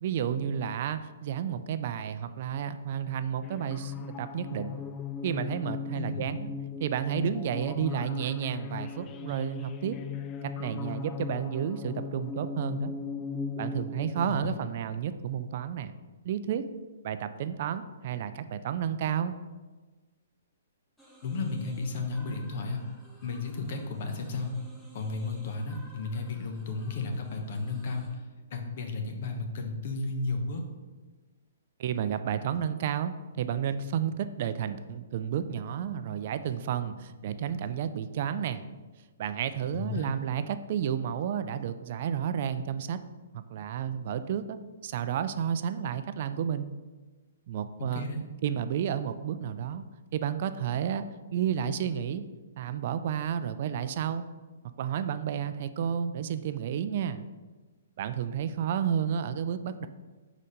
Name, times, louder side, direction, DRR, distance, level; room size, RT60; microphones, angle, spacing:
voice 1, 0.0-4.8 5.2-6.5 6.8-10.0 10.4-12.9 13.6-15.9 16.2-16.6 17.0-19.4 31.8-38.7 39.2-43.0 43.3-46.7 47.5-48.1 48.4-49.8 50.1-51.0 51.3-52.3 52.6-54.3 54.6-57.2 58.0-59.9, right 8 dB, 50° right, 11 dB, 0.4 m, -31 dB
sound 1, 3.4-14.3, left 6 dB, 25° left, 0.4 m, -38 dB
voice 2, 6.0-6.4 14.3-14.6 21.2-22.8 23.2-24.5 24.9-28.2 28.5-30.6 39.7-40.2 47.8-48.2, left 3 dB, 55° left, 4 dB, 1.0 m, -33 dB
sound 2, 21.0-28.1, right 1 dB, 5° left, 1.5 m, -55 dB
5.0 x 4.2 x 5.1 m, 1.3 s
hypercardioid pair, 135°, 0 cm